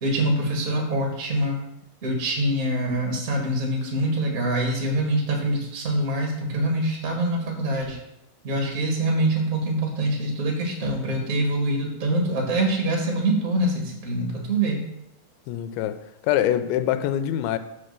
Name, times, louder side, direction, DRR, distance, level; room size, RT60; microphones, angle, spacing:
voice 1, 0.0-1.6 2.0-8.0 8.4-14.8, right 1 dB, 40° right, 1.2 m, -24 dB
voice 2, 15.5-17.6, left 11 dB, 90° left, 2.5 m, -24 dB
7.5 x 4.3 x 6.7 m
omnidirectional pair, 4.3 m